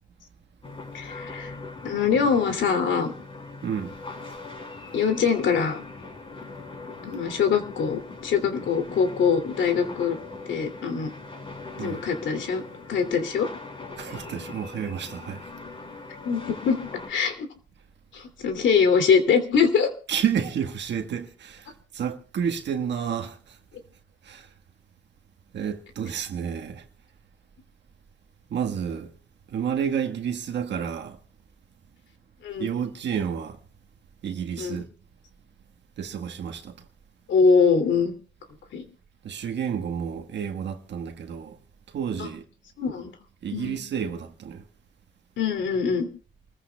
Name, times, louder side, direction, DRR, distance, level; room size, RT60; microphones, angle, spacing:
sound 1, 0.6-17.1, left 3 dB, 30° left, 5.3 m, -41 dB
voice 1, 0.9-1.5 1.8-3.1 4.9-5.8 7.0-10.2 10.5-11.1 11.8-12.6 12.9-13.5 16.2-16.8 17.1-17.5 18.1-19.9 32.4-32.7 34.6-34.8 37.3-38.1 38.7-38.8 42.2-42.3 42.8-43.1 43.5-43.8 45.4-46.1, left 6 dB, 70° left, 2.7 m, -23 dB
voice 2, 3.6-3.9 11.8-12.0 14.0-15.5 20.1-23.6 24.2-24.5 25.5-26.8 28.5-29.1 29.5-31.2 32.6-33.6 34.2-34.9 36.0-36.7 39.2-41.6 41.9-42.4 43.4-44.6, right 8 dB, 65° right, 1.5 m, -30 dB
28.5 x 14.5 x 2.3 m
cardioid pair, 90°, 20 cm